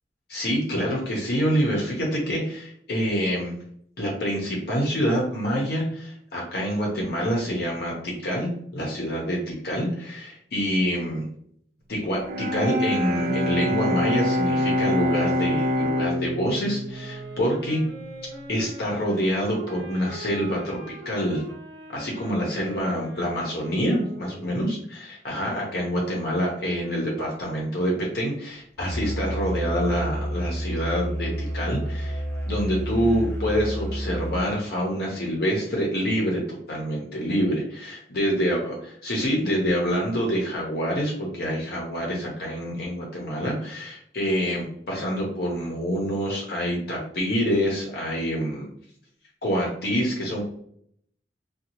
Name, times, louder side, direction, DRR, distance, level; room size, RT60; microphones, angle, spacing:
voice 1, 0.3-3.5 4.0-11.3 11.9-17.8 18.5-20.8 21.0-21.4 21.9-38.7 39.0-48.7 49.4-50.4, equal, 60° left, -2 dB, 0.7 m, -26 dB
Bowed string instrument, 12.2-18.2, left 1 dB, 50° right, 0.3 m, -26 dB
sound 1, 16.9-24.7, right 1 dB, 85° right, 0.6 m, -42 dB
Musical instrument, 28.8-34.4, equal, 10° left, 0.5 m, -30 dB
2.7 x 2.3 x 2.8 m, 0.65 s
head